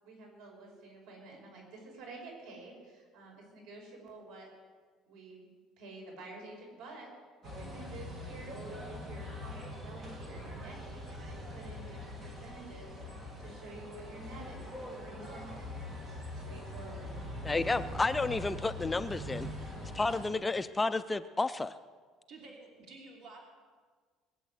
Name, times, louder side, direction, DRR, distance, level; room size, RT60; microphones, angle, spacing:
voice 1, 0.0-4.5 5.1-5.5 5.8-7.1 7.4-12.9 13.4-15.7 16.3-17.1, right 2 dB, 85° right, 0 dB, 6.1 m, -50 dB
sound 1, 7.4-20.3, left 1 dB, 25° right, 2.0 m, -43 dB
voice 2, 17.4-19.5 19.9-21.7, left 3 dB, 10° left, 11 dB, 0.4 m, -31 dB
voice 3, 22.3-23.4, right 3 dB, 55° right, 0 dB, 3.0 m, -51 dB
21.5 x 8.3 x 7.9 m, 1.5 s
cardioid pair, 170°, 0 cm